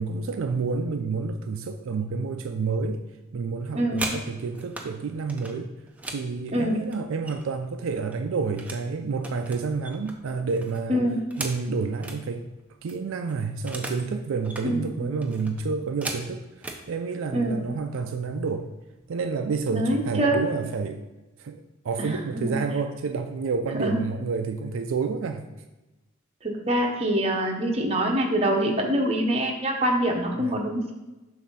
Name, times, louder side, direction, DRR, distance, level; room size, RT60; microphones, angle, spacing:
voice 1, 0.0-3.0 3.3-5.7 6.1-11.0 11.4-12.4 12.8-16.4 16.9-18.7 19.1-21.0 21.4-25.4 30.3-30.6, right 4 dB, 75° right, 6 dB, 0.4 m, -29 dB
sound 1, 3.6-4.9 5.3-7.6 7.9-8.9 9.2-12.2 12.6-12.7 12.9-14.1 14.4-14.7 15.2-16.8 17.7-17.8 18.2-18.5 18.8-19.3, right 2 dB, 5° right, 0.5 m, -38 dB
voice 2, 19.7-20.4 22.0-22.5 23.8-24.0 26.4-30.9, right 1 dB, 30° right, 1 dB, 0.8 m, -25 dB
7.3 x 2.7 x 5.5 m, 1.1 s
head